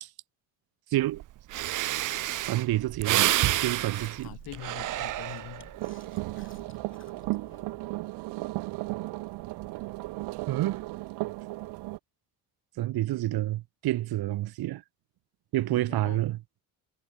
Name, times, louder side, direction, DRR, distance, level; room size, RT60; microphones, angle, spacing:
voice 1, 0.9-1.2 2.4-4.3 10.5-10.8 12.8-14.8 15.5-16.4, right 15 dB, 70° right, 1.7 m, -29 dB
Breathing, 1.2-1.3 1.5-5.8 6.2-6.6, right 14 dB, 50° right, 0.8 m, -29 dB
Chewing mastication, 2.7-8.0, left 6 dB, 30° left, 7.5 m, -55 dB
voice 2, 4.2-5.7 15.7-16.2, left 15 dB, 70° left, 1.8 m, -44 dB
sound 1, 5.7-12.0, right 21 dB, 90° right, 0.6 m, -35 dB
cardioid pair, 155°, 38 cm